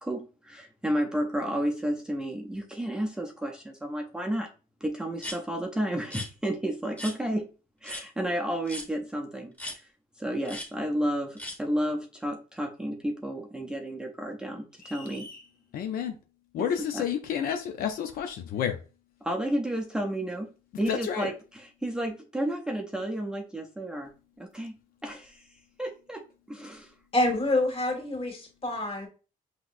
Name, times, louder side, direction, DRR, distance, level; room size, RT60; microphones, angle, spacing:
voice 1, 0.0-4.5 4.8-7.5 7.8-9.9 10.2-15.3 16.9-17.1 19.2-20.5 20.8-24.1 24.4-24.8 25.0-25.5 25.8-26.9, right 1 dB, 5° right, 1 dB, 0.5 m, -32 dB
sound 1, 5.2-5.4 6.0-6.3 7.0-7.2 7.8-8.0 8.7-8.9 9.6-9.8 10.4-10.7 11.4-11.6, left 1 dB, 10° left, 1.4 m, -37 dB
sound 2, 14.8-15.5, left 2 dB, 65° left, 1.8 m, -46 dB
voice 2, 15.7-16.2 16.5-18.8 20.9-21.3, left 8 dB, 85° left, 6 dB, 0.5 m, -30 dB
voice 3, 27.1-29.1, left 2 dB, 40° left, 0 dB, 2.0 m, -27 dB
5.9 x 2.9 x 2.5 m, 0.34 s
cardioid pair, 135°, 15 cm